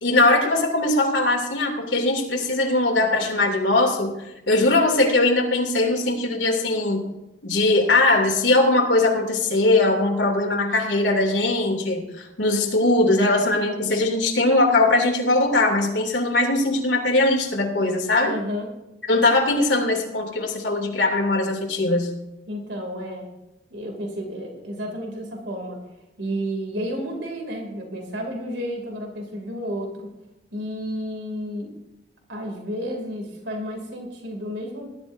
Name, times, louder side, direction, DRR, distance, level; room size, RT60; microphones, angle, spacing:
voice 1, 0.0-4.1 4.5-7.0 7.4-18.3 19.1-22.1, left 2 dB, 85° left, 1 dB, 2.8 m, -20 dB
voice 2, 18.2-18.7 22.5-23.3 23.7-25.8 26.2-30.1 30.5-31.7 32.3-34.9, equal, 85° right, 2 dB, 2.9 m, -31 dB
20.0 x 12.5 x 2.7 m, 0.95 s
head